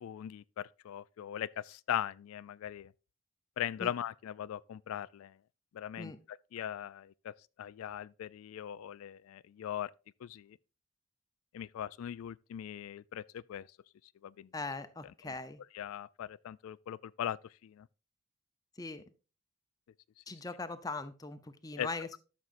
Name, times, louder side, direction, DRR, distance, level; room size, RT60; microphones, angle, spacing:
voice 1, 0.0-2.9 3.6-5.4 5.7-6.1 6.5-9.9 10.2-10.6 11.5-13.7 14.2-14.5 15.7-17.9 21.8-21.9, left 10 dB, 90° left, 0.3 m, -40 dB
voice 2, 14.5-15.6 18.8-19.0 20.3-22.2, left 3 dB, 20° left, 0.6 m, -40 dB
12.5 x 6.3 x 2.6 m
head